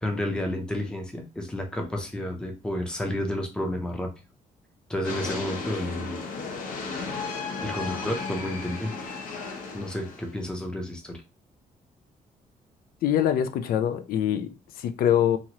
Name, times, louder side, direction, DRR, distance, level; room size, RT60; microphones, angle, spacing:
voice 1, 0.0-4.1 4.9-6.2 7.6-9.1 9.7-11.2, left 1 dB, 5° left, 0.5 m, -31 dB
sound 1, 5.0-10.5, left 4 dB, 70° left, 0.8 m, -34 dB
voice 2, 13.0-15.4, left 10 dB, 90° left, 0.4 m, -24 dB
3.0 x 2.4 x 2.8 m
cardioid pair, 180°, 15 cm